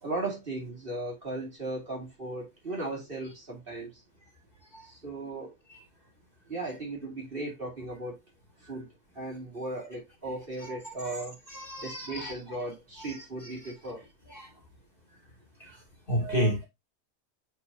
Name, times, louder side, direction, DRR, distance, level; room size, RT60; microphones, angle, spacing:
voice 1, 0.0-3.9 4.8-5.5 6.5-8.2 8.7-8.9 9.2-11.4 11.8-14.0, right 2 dB, 35° right, 2.6 m, -36 dB
voice 2, 11.5-12.3 14.4-14.5 16.1-16.7, equal, 35° left, 2.9 m, -29 dB
8.0 x 4.7 x 2.7 m
omnidirectional pair, 1.6 m